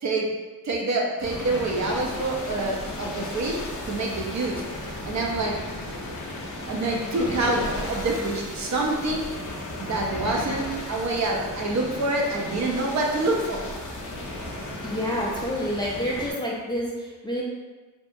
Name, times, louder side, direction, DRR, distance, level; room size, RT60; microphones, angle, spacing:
voice 1, 0.6-4.6 5.1-5.5 6.7-7.6 7.9-9.2 9.8-13.6, right 2 dB, 55° right, 0 dB, 0.5 m, -26 dB
sound 1, 1.2-16.3, left 1 dB, 60° left, 0.6 m, -34 dB
voice 2, 14.8-17.4, equal, 15° left, -5 dB, 0.3 m, -28 dB
2.7 x 2.3 x 2.5 m, 1.2 s
wide cardioid pair, 130°, 34 cm